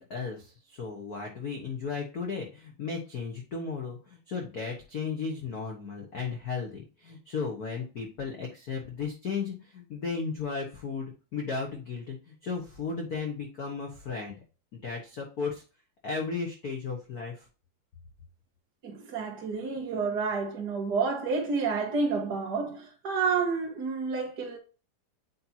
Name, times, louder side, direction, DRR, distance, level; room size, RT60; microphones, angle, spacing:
voice 1, 0.0-14.3 14.7-15.6 16.0-17.5, left 5 dB, 85° left, 0.8 m, -35 dB
voice 2, 18.8-24.6, right 4 dB, 40° right, 1.7 m, -29 dB
8.5 x 4.2 x 2.8 m
omnidirectional pair, 3.4 m